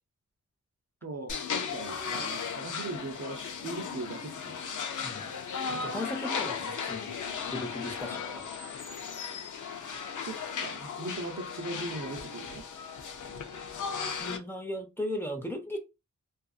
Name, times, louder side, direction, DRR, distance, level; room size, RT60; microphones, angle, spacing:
voice 1, 1.0-4.6 10.3-12.7, right 2 dB, 55° right, 0.7 m, -39 dB
sound 1, 1.3-14.4, left 6 dB, 70° left, 0.5 m, -36 dB
voice 2, 5.7-7.1 7.4-8.5 14.2-15.8, left 1 dB, 5° left, 0.6 m, -37 dB
2.6 x 2.5 x 2.4 m
wide cardioid pair, 75°, 31 cm